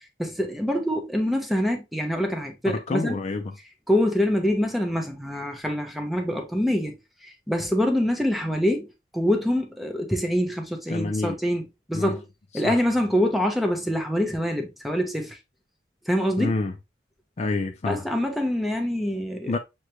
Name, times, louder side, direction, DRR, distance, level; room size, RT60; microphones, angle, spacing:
voice 1, 0.2-3.2 3.9-8.9 9.1-12.2 12.5-15.4 16.1-16.5 17.8-19.6, equal, ahead, 0.7 m, -25 dB
voice 2, 2.7-3.6 10.9-11.4 11.9-12.2 12.6-12.8 16.4-16.7 17.4-18.0 19.5-19.6, left 3 dB, 35° left, 0.4 m, -27 dB
6.4 x 2.2 x 3.0 m
head